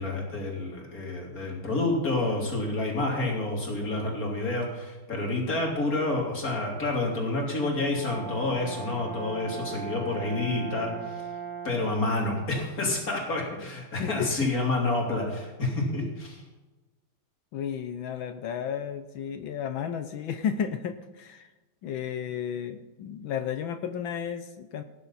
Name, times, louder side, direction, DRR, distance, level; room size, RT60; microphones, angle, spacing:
voice 1, 0.0-11.2 11.6-16.4, left 2 dB, 40° left, -2 dB, 3.8 m, -29 dB
Brass instrument, 7.6-12.0, right 6 dB, 80° right, 2.2 m, -38 dB
voice 2, 14.0-14.5 17.5-21.5 21.8-24.8, left 8 dB, 70° left, 9 dB, 1.5 m, -33 dB
17.5 x 10.5 x 4.2 m, 1.2 s
omnidirectional pair, 2.3 m